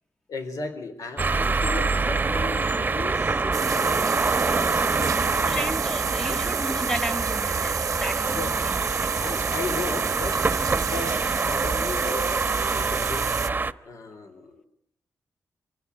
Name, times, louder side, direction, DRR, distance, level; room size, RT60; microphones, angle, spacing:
voice 1, 0.3-4.1 4.5-5.7 6.2-6.4 8.3-8.5 9.2-10.4 10.8-13.4 13.8-14.6, left 4 dB, 70° left, 3.5 m, -36 dB
sound 1, 1.2-13.7, right 4 dB, 30° right, 1.0 m, -25 dB
sound 2, 3.5-13.5, right 8 dB, 75° right, 0.8 m, -32 dB
voice 2, 5.5-9.2, equal, 10° left, 1.1 m, -34 dB
25.5 x 16.5 x 9.5 m
wide cardioid pair, 105°, 6 cm